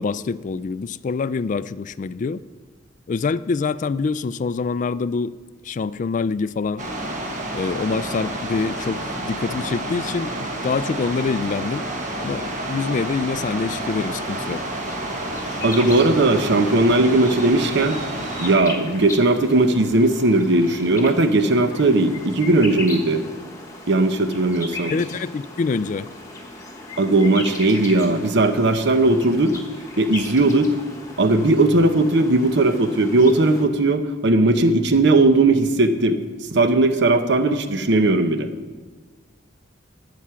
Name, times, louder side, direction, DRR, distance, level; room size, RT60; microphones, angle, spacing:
voice 1, 0.0-2.4 3.1-5.3 5.6-6.8 7.5-10.4 10.6-11.9 12.2-14.6 24.9-26.1, left 4 dB, 40° left, 16 dB, 0.3 m, -25 dB
sound 1, 6.8-18.6, right 1 dB, 40° right, 1.5 m, -29 dB
sound 2, 13.9-33.6, left 2 dB, 15° left, 1.5 m, -37 dB
voice 2, 15.6-18.0 18.4-23.2 23.9-24.9 27.0-29.6 30.0-30.8 31.2-36.2 36.5-38.5, right 2 dB, 65° right, 9 dB, 0.8 m, -18 dB
12.5 x 8.5 x 5.8 m, 1.4 s
head